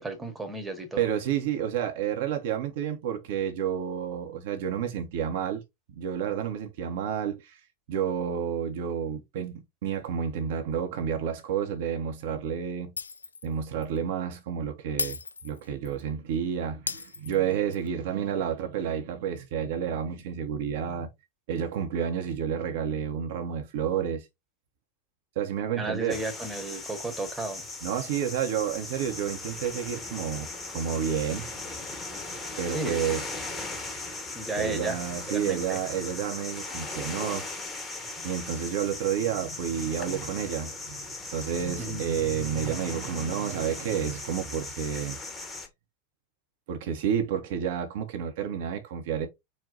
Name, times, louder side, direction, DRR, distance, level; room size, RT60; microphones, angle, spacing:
voice 1, 0.0-1.0 25.8-27.6 32.7-33.0 34.3-35.0 35.3-35.8 41.8-42.0, right 2 dB, 10° right, 1.1 m, -33 dB
voice 2, 1.0-5.6 6.0-7.6 7.9-12.9 13.4-21.1 21.5-24.3 25.4-26.2 27.8-31.5 32.6-33.3 34.6-37.8 38.2-45.2 46.7-49.3, right 8 dB, 50° right, 0.7 m, -30 dB
Shatter, 13.0-13.5 13.8-14.0 15.0-16.0 16.9-17.9, left 4 dB, 75° left, 0.3 m, -35 dB
sound 1, 26.1-45.7, left 3 dB, 15° left, 1.2 m, -38 dB
4.2 x 2.2 x 3.8 m
figure-of-eight pair, 90°, 0 cm